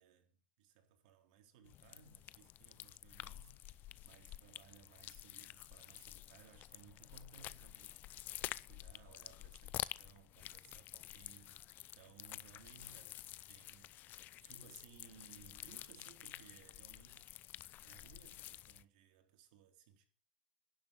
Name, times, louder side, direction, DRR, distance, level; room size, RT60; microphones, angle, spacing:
voice 1, 0.0-11.7 11.9-13.9 14.4-20.1, right 7 dB, 65° right, 3.9 m, -62 dB
sound 1, 1.6-18.8, left 14 dB, 40° left, 0.6 m, -50 dB
11.0 x 9.1 x 9.0 m
supercardioid pair, 125°, 5 cm